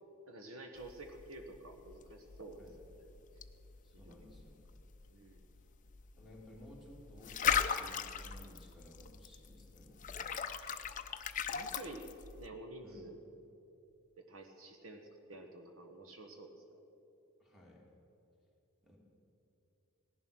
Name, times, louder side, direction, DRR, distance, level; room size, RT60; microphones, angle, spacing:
voice 1, 0.3-2.6 3.0-3.1 4.0-4.3 5.1-5.4 11.5-12.0 12.4-13.2 14.3-16.8, right 2 dB, 65° right, 4 dB, 1.3 m, -50 dB
sound 1, 0.8-12.5, left 7 dB, 35° left, 0.6 m, -39 dB
voice 2, 3.8-4.6 6.2-10.3 12.8-13.0 17.4-17.8 18.8-19.0, left 1 dB, ahead, -3 dB, 2.6 m, -57 dB
17.5 x 11.0 x 6.2 m, 2.8 s
head